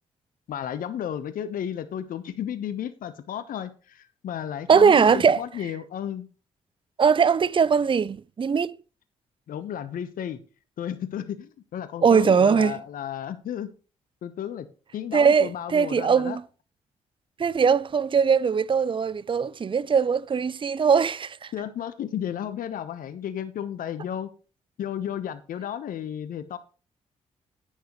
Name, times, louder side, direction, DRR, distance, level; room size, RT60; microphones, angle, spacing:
voice 1, 0.5-6.3 9.5-10.4 10.8-13.7 14.2-14.7 14.9-16.4 21.5-24.3 24.8-26.6, left 9 dB, 65° left, 1.1 m, -33 dB
voice 2, 4.7-5.4 7.0-8.8 12.0-12.8 15.1-16.4 17.4-21.5, right 6 dB, 35° right, 0.5 m, -20 dB
10.5 x 9.5 x 3.1 m
hypercardioid pair, 45°, 15 cm